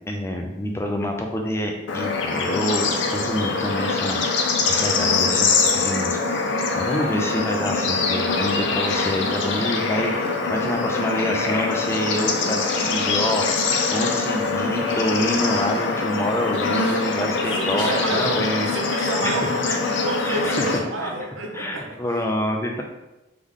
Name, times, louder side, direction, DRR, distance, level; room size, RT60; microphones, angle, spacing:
voice 1, 0.1-4.2 4.7-6.2 6.8-13.6 13.9-18.7 19.2-19.8 20.2-20.7 21.0-21.1 21.5-22.8, left 1 dB, 15° left, 2 dB, 0.4 m, -27 dB
Bird / Insect / Frog, 1.9-20.8, left 4 dB, 65° left, 0.5 m, -23 dB
voice 2, 17.5-18.4 18.7-19.7 20.0-22.0, right 2 dB, 80° right, 2 dB, 0.6 m, -29 dB
3.6 x 3.1 x 3.6 m, 0.98 s
head